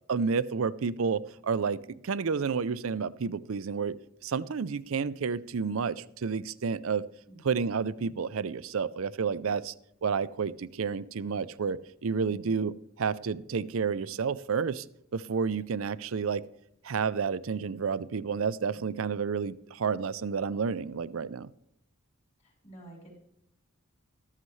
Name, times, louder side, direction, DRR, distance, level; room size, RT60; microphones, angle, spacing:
voice 1, 0.1-3.9 4.2-7.0 7.4-9.7 10.0-14.8 15.1-16.4 16.8-21.5, right 5 dB, 70° right, 17 dB, 0.5 m, -30 dB
voice 2, 22.4-23.2, right 2 dB, 35° left, -2 dB, 4.3 m, -51 dB
13.5 x 13.0 x 3.2 m, 0.75 s
head